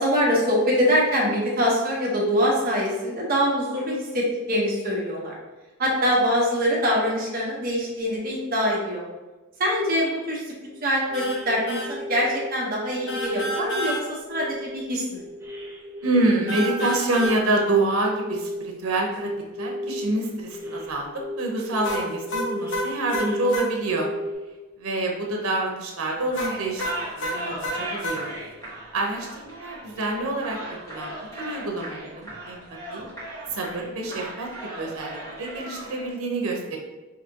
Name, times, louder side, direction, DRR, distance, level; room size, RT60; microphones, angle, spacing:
voice 1, 0.0-5.4 5.8-9.1 9.6-10.4 10.8-15.2, equal, 45° right, -4 dB, 1.1 m, -24 dB
sound 1, 10.7-10.8 11.1-12.5 13.0-13.9 14.3-18.6 19.2-20.1 20.5-20.9 21.2-24.3, left 1 dB, 10° right, 0.5 m, -34 dB
sound 2, 11.1-11.4 11.7-11.9 13.1-14.0 16.5-17.4 21.8-23.7 26.3-28.2, equal, 60° left, 0.7 m, -29 dB
voice 2, 16.0-19.3 19.6-21.1 21.4-24.1 24.8-26.9 27.2-28.3 28.9-30.6 30.9-32.6 32.9-33.0 33.5-36.8, right 2 dB, 80° right, 0 dB, 0.9 m, -27 dB
sound 3, 26.2-36.1, right 1 dB, 15° left, 1.3 m, -38 dB
4.9 x 2.8 x 2.9 m, 1.2 s
head